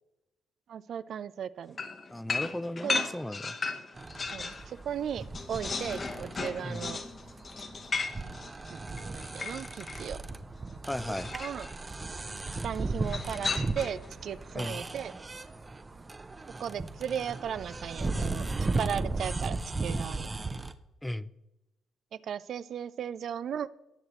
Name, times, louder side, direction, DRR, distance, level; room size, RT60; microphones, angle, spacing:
voice 1, 0.7-1.8 2.8-3.1 4.3-7.0 8.7-10.2 11.3-11.7 12.6-15.1 16.6-20.3 22.2-23.7, right 8 dB, 70° right, 16 dB, 0.4 m, -36 dB
sound 1, 1.8-4.7 5.0-10.1 11.1-11.7 13.0-14.1, left 4 dB, 40° left, 1.0 m, -35 dB
voice 2, 2.1-3.6 6.6-6.9 10.8-11.3 14.5-14.8 21.0-21.3, left 1 dB, 10° left, 16 dB, 0.4 m, -36 dB
sound 2, 3.9-20.7, right 3 dB, 25° right, 0.7 m, -36 dB
18.0 x 6.5 x 3.0 m, 0.95 s
cardioid pair, 75°, 0 cm